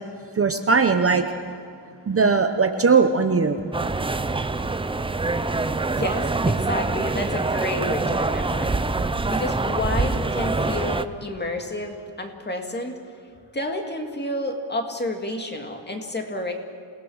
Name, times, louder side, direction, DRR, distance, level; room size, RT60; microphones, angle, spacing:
voice 1, 0.3-1.3 2.1-3.7, right 4 dB, 30° right, 6 dB, 0.8 m, -19 dB
sound 1, 3.7-11.0, right 3 dB, 10° right, 0.5 m, -25 dB
voice 2, 5.9-8.8 9.3-13.0 13.5-16.5, left 1 dB, 20° left, 4 dB, 2.1 m, -30 dB
28.0 x 18.5 x 6.4 m, 2.4 s
wide cardioid pair, 160°, 46 cm